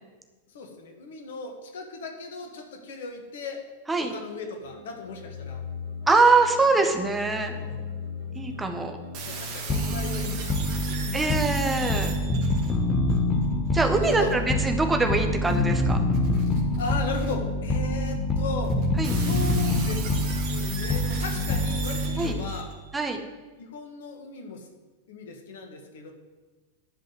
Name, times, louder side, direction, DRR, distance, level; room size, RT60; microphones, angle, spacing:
voice 1, 0.5-3.6 4.0-5.6 7.4-7.9 9.3-11.2 11.5-11.7 12.1-12.3 13.9-14.3 14.6-14.7 16.8-18.8 19.1-22.7 23.6-24.7 25.1-26.1, left 3 dB, 60° left, 3 dB, 1.9 m, -37 dB
sound 1, 4.6-11.9, left 4 dB, 85° left, 4.1 m, -40 dB
voice 2, 6.1-7.5 8.3-9.0 11.1-12.1 13.7-16.0 19.0-19.1 22.2-22.4 22.9-23.2, right 3 dB, 10° right, 4 dB, 1.4 m, -23 dB
sound 2, 9.1-13.2 14.1-14.3 15.4-15.6 16.1-17.3 18.1-18.2 18.6-22.8, right 5 dB, 45° right, 2.3 m, -38 dB
sound 3, 9.7-22.6, left 2 dB, 20° left, 1.3 m, -26 dB
11.0 x 5.4 x 8.1 m, 1.3 s
figure-of-eight pair, 90°, 0 cm